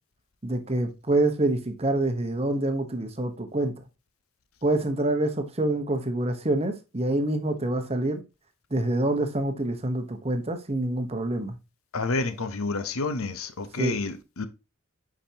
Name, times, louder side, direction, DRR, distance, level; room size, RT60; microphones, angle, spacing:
voice 1, 0.4-3.7 4.6-8.2 8.7-11.6 13.8-13.9, right 1 dB, 30° right, 1.0 m, -26 dB
voice 2, 11.9-14.5, left 3 dB, 80° left, 0.9 m, -29 dB
8.8 x 5.0 x 2.8 m
head